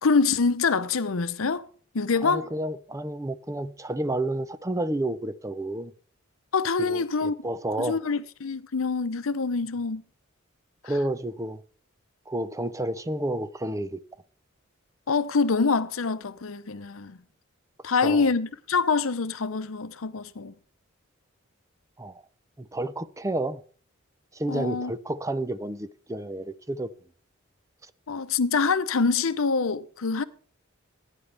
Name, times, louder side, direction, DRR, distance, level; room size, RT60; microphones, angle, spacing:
voice 1, 0.0-1.7 1.9-2.5 6.5-7.3 7.8-10.0 15.1-17.2 17.8-20.5 24.5-24.9 28.1-30.2, left 4 dB, 75° left, 0.7 m, -25 dB
voice 2, 2.2-5.9 6.8-8.0 10.8-11.6 12.3-14.0 18.0-18.3 22.0-22.2 22.6-23.6 24.3-26.9, right 1 dB, 15° right, 0.6 m, -30 dB
16.0 x 9.9 x 3.4 m
head